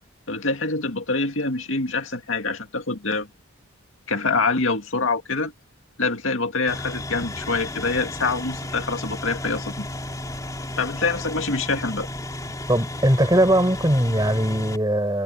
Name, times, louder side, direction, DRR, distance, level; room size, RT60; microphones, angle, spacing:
voice 1, 0.3-3.3 4.1-5.5 6.0-9.9 10.8-12.1, left 3 dB, 65° left, 2.3 m, -25 dB
sound 1, 6.7-14.8, left 1 dB, 15° left, 3.1 m, -33 dB
voice 2, 12.7-15.2, right 1 dB, 20° right, 7.4 m, -20 dB
head